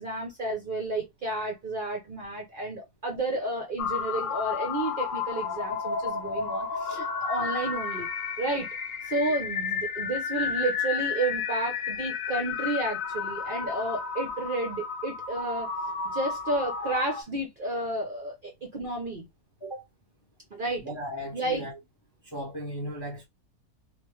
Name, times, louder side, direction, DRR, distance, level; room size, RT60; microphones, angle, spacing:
voice 1, 0.0-8.1 8.4-8.7 9.0-15.7 16.0-19.3 20.5-20.8 21.3-21.7, right 2 dB, 45° right, 0.7 m, -31 dB
sound 1, 3.8-17.2, left 5 dB, 65° left, 1.0 m, -32 dB
voice 2, 20.8-21.8 22.2-23.3, equal, 25° left, 0.6 m, -36 dB
3.4 x 2.4 x 3.1 m
omnidirectional pair, 1.6 m